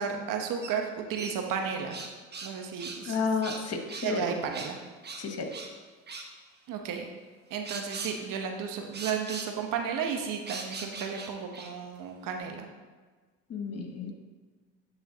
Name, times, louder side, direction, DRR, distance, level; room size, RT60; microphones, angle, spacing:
voice 1, 0.0-2.0 2.4-3.3 4.0-4.8 6.7-7.1 7.5-12.7, right 6 dB, 65° right, 3 dB, 0.9 m, -33 dB
sound 1, 0.6-0.7 1.1-2.5 2.8-3.0 3.4-4.1 4.5-4.7 5.0-5.7 6.1-6.3 7.6-8.2 8.9-9.5 10.5-11.7, right 4 dB, 30° right, 0.9 m, -40 dB
voice 2, 3.0-4.3 5.2-5.5 13.5-14.1, left 5 dB, 45° left, 4 dB, 1.1 m, -31 dB
10.5 x 3.5 x 2.8 m, 1.4 s
supercardioid pair, 65°, 35 cm